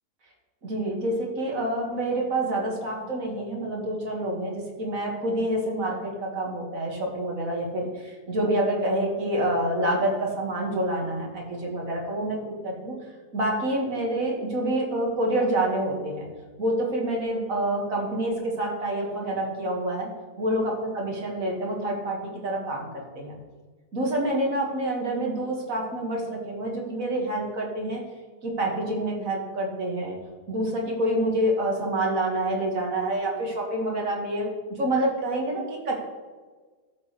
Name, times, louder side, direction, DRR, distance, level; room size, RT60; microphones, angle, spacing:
voice 1, 0.6-12.9 13.3-16.2 16.6-20.1 20.4-23.4 23.9-28.0 28.4-30.2 30.5-34.5 34.8-36.0, right 1 dB, 55° right, -1 dB, 2.2 m, -27 dB
14.0 x 7.2 x 3.2 m, 1.4 s
omnidirectional pair, 1.7 m